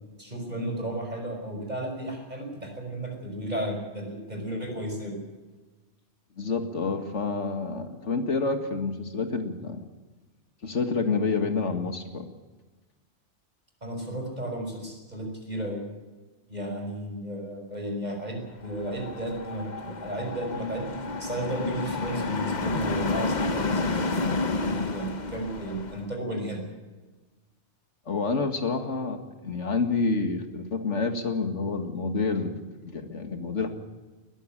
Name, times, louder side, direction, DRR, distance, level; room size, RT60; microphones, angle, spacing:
voice 1, 0.2-5.2 13.8-15.8 16.5-20.9 21.2-26.7, right 1 dB, 35° right, 3 dB, 5.7 m, -34 dB
voice 2, 6.4-9.8 10.6-12.3 28.1-33.7, left 4 dB, 80° left, 7 dB, 2.3 m, -28 dB
sound 1, 18.6-26.1, left 3 dB, 40° left, 1.3 m, -30 dB
20.5 x 15.0 x 9.0 m, 1.2 s
omnidirectional pair, 1.2 m